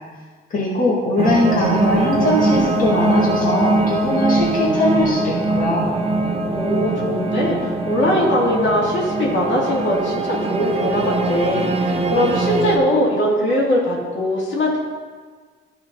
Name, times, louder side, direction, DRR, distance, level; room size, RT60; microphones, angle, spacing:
voice 1, 0.5-5.9, left 2 dB, 45° left, -6 dB, 2.0 m, -20 dB
sound 1, 1.2-12.8, right 2 dB, 30° right, 0.8 m, -21 dB
voice 2, 6.5-14.8, equal, 70° left, -4 dB, 2.5 m, -20 dB
12.5 x 4.5 x 3.9 m, 1.5 s
cardioid pair, 90°, 20 cm